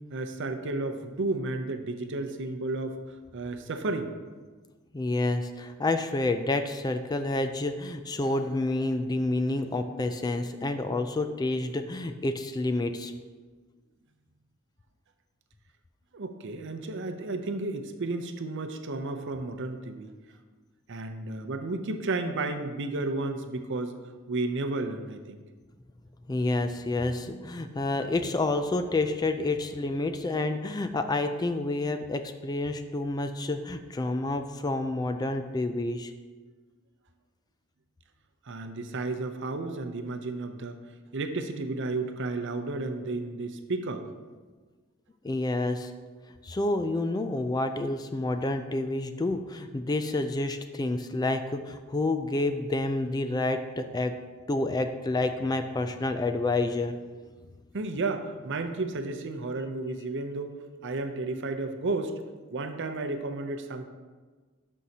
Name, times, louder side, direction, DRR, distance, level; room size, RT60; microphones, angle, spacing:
voice 1, 0.1-4.1 16.1-20.1 20.9-24.0 24.3-25.4 38.5-40.8 41.1-44.1 57.7-60.6 60.8-62.1 62.5-63.8, right 2 dB, 60° right, 7 dB, 0.6 m, -32 dB
voice 2, 4.9-13.1 26.3-36.1 45.2-45.9 46.4-54.1 54.5-56.9, left 2 dB, 20° left, 8 dB, 0.3 m, -29 dB
12.5 x 5.5 x 2.8 m, 1.4 s
head